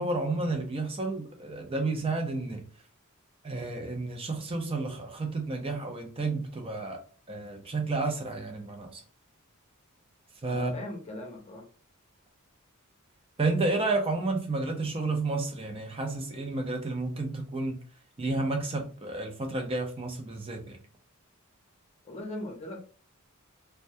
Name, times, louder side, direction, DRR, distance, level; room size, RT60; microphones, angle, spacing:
voice 1, 0.0-2.6 3.4-7.0 7.3-9.0 10.4-10.7 13.4-17.8 18.2-20.8, right 3 dB, 25° right, 0.5 m, -31 dB
voice 2, 10.5-11.7 22.0-22.8, left 1 dB, 30° left, 0.7 m, -39 dB
2.2 x 2.2 x 2.6 m
head